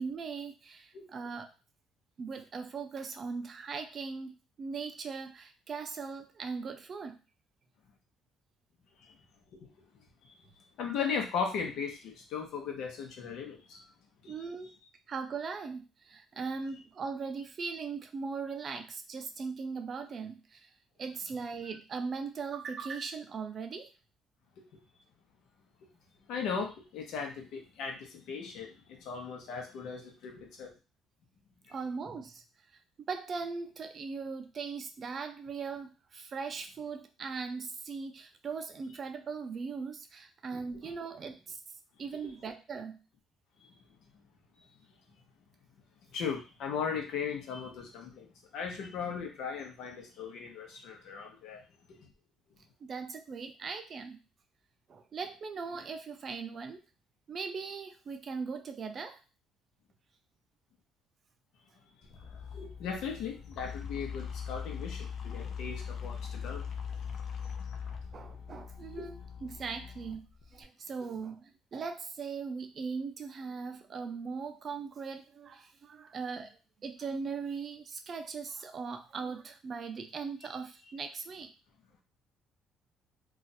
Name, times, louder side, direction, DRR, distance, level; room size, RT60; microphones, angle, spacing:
voice 1, 0.0-1.5 2.2-7.2 14.3-14.7 15.1-20.7 21.0-23.9 31.7-32.4 33.0-41.6 42.0-43.0 52.8-54.2 54.9-56.8 57.3-59.2 68.1-70.3 70.5-76.5 76.8-81.5, right 5 dB, 35° right, 7 dB, 0.4 m, -39 dB
voice 2, 10.8-13.8 14.2-14.3 26.3-30.7 40.8-40.9 42.2-42.3 46.1-51.6 62.5-66.6 68.9-69.1, left 6 dB, 70° left, 2 dB, 0.9 m, -37 dB
sound 1, 62.0-70.6, left 7 dB, 45° left, 0.6 m, -41 dB
2.5 x 2.4 x 4.1 m, 0.32 s
cardioid pair, 150°, 0 cm